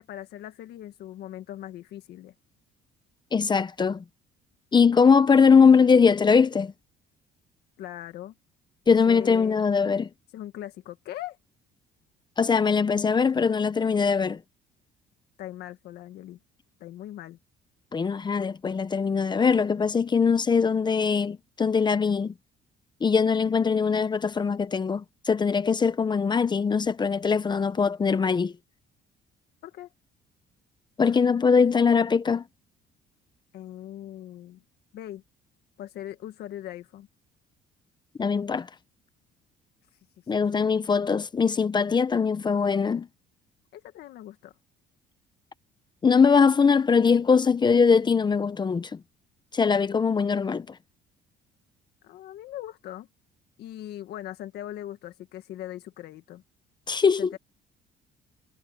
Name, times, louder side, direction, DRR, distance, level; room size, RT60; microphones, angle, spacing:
voice 1, 0.0-2.3 7.8-8.3 9.1-9.6 10.3-11.4 15.4-16.4 16.8-17.4 29.6-29.9 33.5-34.6 34.9-35.2 35.8-37.1 43.7-44.5 52.0-53.1 53.6-56.4 57.2-57.4, left 12 dB, 75° left, 1.7 m, -40 dB
voice 2, 3.3-4.0 4.7-6.7 8.9-10.1 12.4-14.4 17.9-22.3 23.0-28.5 31.0-32.4 38.2-38.7 40.3-43.1 46.0-48.9 49.5-50.7 56.9-57.3, left 5 dB, 25° left, 0.8 m, -21 dB
cardioid pair, 110°, 17 cm